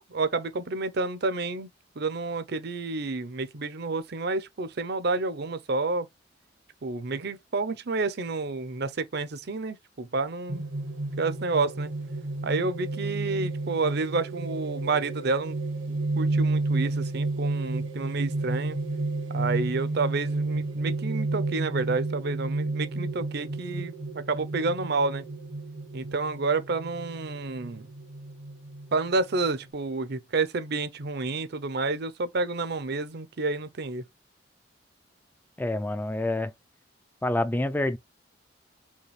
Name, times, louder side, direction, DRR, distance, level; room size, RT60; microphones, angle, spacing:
voice 1, 0.0-1.7 2.0-6.1 6.8-10.6 11.2-11.9 12.4-15.6 15.9-18.8 19.3-25.2 25.9-27.9 28.9-34.0, right 3 dB, 55° right, 0.6 m, -29 dB
sound 1, 10.5-29.7, right 2 dB, 85° right, 1.1 m, -31 dB
voice 2, 35.6-36.5 37.2-38.0, left 1 dB, 10° left, 0.4 m, -27 dB
5.2 x 2.3 x 3.1 m
head